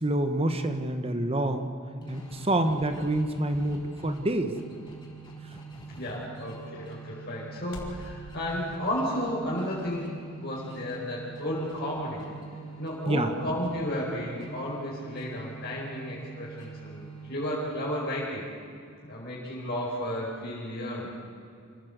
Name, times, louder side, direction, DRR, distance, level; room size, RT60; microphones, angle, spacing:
voice 1, 0.0-1.7 2.1-4.5 13.1-13.3, right 1 dB, 30° right, 7 dB, 1.2 m, -27 dB
sound 1, 1.8-8.1, left 1 dB, 75° left, 4.3 m, -52 dB
sound 2, 2.0-18.1, right 5 dB, 20° left, 4.9 m, -44 dB
voice 2, 6.0-12.3 12.8-18.5 19.0-21.1, left 1 dB, 50° left, -5 dB, 4.8 m, -33 dB
27.5 x 16.0 x 8.1 m, 2.5 s
head